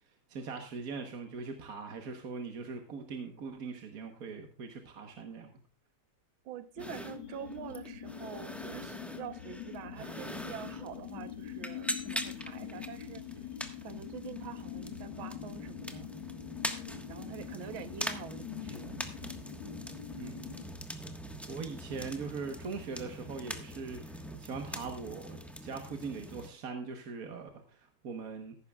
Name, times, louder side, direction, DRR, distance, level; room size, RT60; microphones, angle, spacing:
voice 1, 0.3-5.5 10.0-10.2 20.1-20.8 21.4-28.6, right 4 dB, 50° right, 5 dB, 1.4 m, -41 dB
voice 2, 6.4-13.4 13.8-16.1 17.1-19.0, right 10 dB, 75° right, 10 dB, 1.7 m, -46 dB
sound 1, 6.8-20.7, left 10 dB, 75° left, 2.0 m, -44 dB
sound 2, 6.8-26.5, equal, ahead, 0.8 m, -43 dB
14.5 x 11.5 x 2.3 m, 0.41 s
omnidirectional pair, 2.3 m